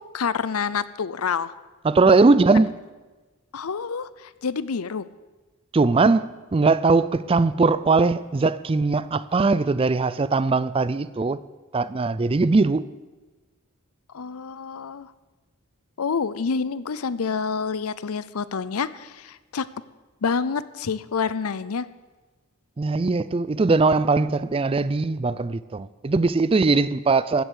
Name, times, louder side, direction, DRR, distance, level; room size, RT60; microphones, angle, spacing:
voice 1, 0.0-1.5 2.1-2.2 3.5-5.1 14.1-15.1 16.0-19.7 20.2-21.9, left 5 dB, 90° left, 0.6 m, -28 dB
voice 2, 1.8-2.8 5.7-11.4 11.7-12.9 22.8-27.4, right 3 dB, 25° right, 0.4 m, -20 dB
14.5 x 7.8 x 8.2 m
head